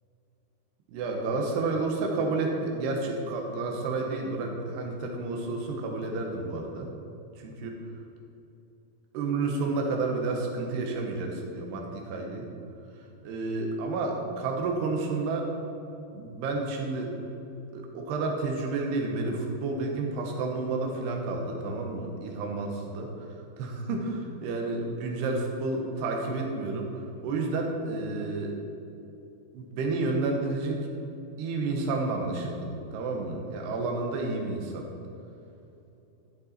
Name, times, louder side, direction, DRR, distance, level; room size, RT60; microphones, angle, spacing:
voice 1, 0.9-6.9 7.4-7.8 9.1-12.5 13.2-15.5 16.1-17.1 17.7-23.1 23.6-28.5 29.5-30.8 31.4-34.8, right 3 dB, 80° right, 1 dB, 3.3 m, -30 dB
14.0 x 8.0 x 4.4 m, 2.8 s
omnidirectional pair, 4.8 m